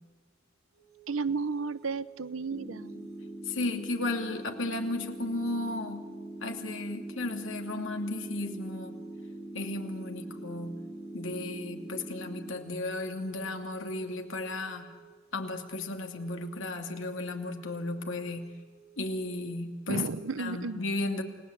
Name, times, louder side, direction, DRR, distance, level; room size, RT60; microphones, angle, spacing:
sound 1, 0.7-19.5, right 7 dB, 55° right, 6.1 m, -57 dB
voice 1, 1.1-3.1 19.9-20.8, right 4 dB, 85° right, 16 dB, 0.8 m, -33 dB
sound 2, 2.5-12.5, right 1 dB, ahead, 3.7 m, -43 dB
voice 2, 3.5-6.0 6.4-9.0 9.5-10.8 11.1-14.9 15.3-18.5 19.0-20.1 20.4-21.2, left 2 dB, 70° left, 4 dB, 2.7 m, -34 dB
29.0 x 19.0 x 8.2 m, 1.5 s
head